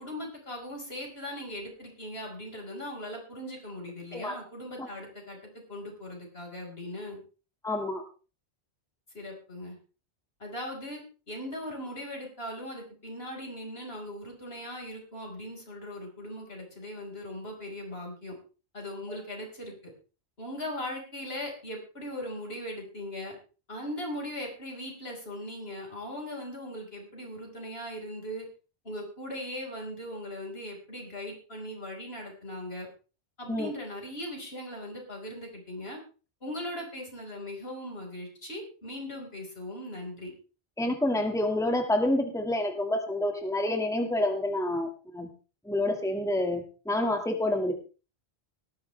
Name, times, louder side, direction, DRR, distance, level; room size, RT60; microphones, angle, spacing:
voice 1, 0.0-7.2 9.1-9.8 10.4-11.0 11.3-18.3 18.7-19.7 20.4-23.4 23.7-28.5 28.8-32.9 33.4-36.0 36.4-40.3, left 1 dB, 70° left, 0 dB, 5.1 m, -39 dB
voice 2, 7.6-8.0 33.5-33.7 40.8-44.9 45.1-45.3 45.7-47.7, left 1 dB, 5° left, 4 dB, 1.8 m, -28 dB
18.5 x 13.5 x 3.3 m, 0.35 s
omnidirectional pair, 1.1 m